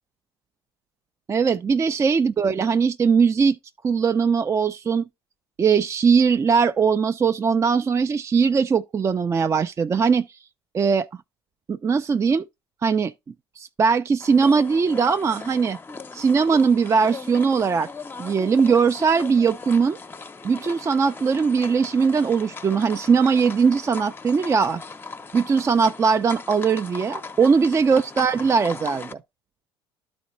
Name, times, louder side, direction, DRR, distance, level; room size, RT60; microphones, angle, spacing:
voice 1, 1.3-3.6 3.8-5.1 5.6-10.2 10.7-11.1 11.7-12.5 12.8-13.1 13.6-15.8 16.1-17.9 18.2-20.0 20.4-24.8 25.3-29.1, right 5 dB, 20° right, 0.4 m, -20 dB
sound 1, 14.2-29.1, left 4 dB, 15° left, 0.7 m, -38 dB
13.0 x 4.3 x 2.6 m
figure-of-eight pair, 60°, 13 cm